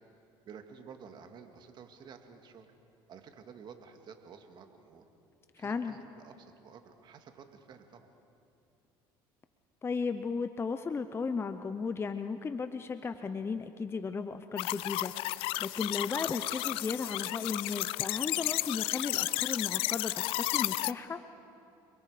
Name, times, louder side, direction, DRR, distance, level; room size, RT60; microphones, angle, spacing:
voice 1, 0.4-2.7 3.1-5.0 5.6-8.1, right 6 dB, 50° right, 6 dB, 2.1 m, -51 dB
voice 2, 5.5-6.0 9.8-21.2, left 5 dB, 25° left, 9 dB, 0.8 m, -35 dB
sound 1, 14.6-20.9, left 19 dB, 75° left, 0.5 m, -33 dB
29.5 x 22.0 x 5.0 m, 2.7 s
supercardioid pair, 95°, 10 cm